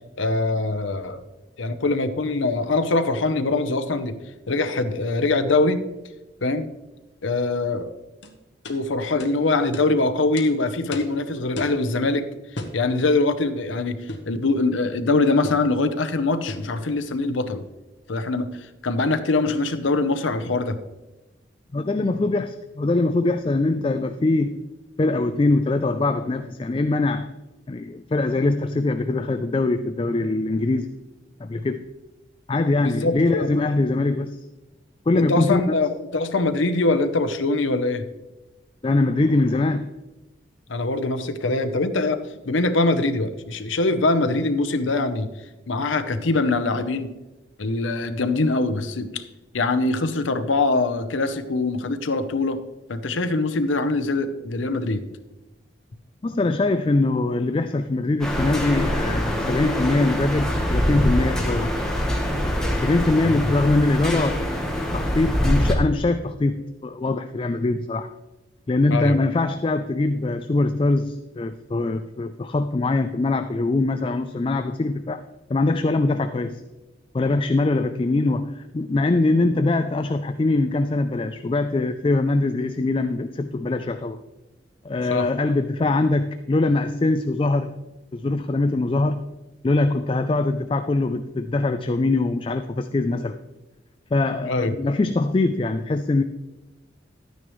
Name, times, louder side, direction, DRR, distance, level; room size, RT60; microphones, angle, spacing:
voice 1, 0.2-1.2 1.6-4.1 4.5-5.8 6.4-6.7 7.2-7.9 8.7-12.3 12.7-14.0 14.3-17.6 18.1-18.5 18.8-20.8 32.8-33.5 35.1-38.0 40.7-45.3 45.7-47.1 47.6-49.2 49.5-52.6 52.9-55.0 63.2-63.4 68.9-69.2 85.1-85.3 94.5-94.7, left 3 dB, 90° left, 10 dB, 0.8 m, -23 dB
sound 1, 8.2-8.3 8.6-8.8 9.2-9.3 9.7-9.9 10.4-10.5 10.9-11.2 11.6-11.8 12.6-12.8 14.1-14.3 15.4-15.7 16.5-16.7, left 1 dB, 65° left, 1.1 m, -33 dB
voice 2, 21.7-24.6 25.0-27.3 27.7-30.9 31.4-31.8 32.5-34.4 35.1-35.6 38.8-39.8 56.2-61.7 62.8-64.6 64.9-68.1 68.7-75.2 75.5-76.6 77.1-84.2 84.8-87.7 88.1-89.2 89.6-93.4 94.1-96.2, left 2 dB, 30° left, 9 dB, 0.3 m, -22 dB
sound 2, 58.2-65.8, equal, 5° left, 1.2 m, -24 dB
12.0 x 9.4 x 3.1 m, 1.1 s
head